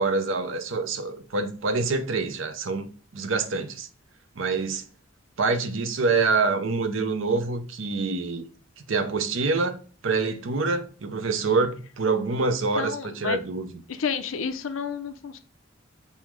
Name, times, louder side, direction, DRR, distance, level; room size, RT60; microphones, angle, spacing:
voice 1, 0.0-3.9 4.4-4.8 5.4-8.4 8.9-9.8 10.0-13.7, right 3 dB, 75° right, 0.6 m, -26 dB
voice 2, 12.8-13.4 13.9-15.4, left 6 dB, 85° left, 0.5 m, -30 dB
5.5 x 2.1 x 4.6 m
head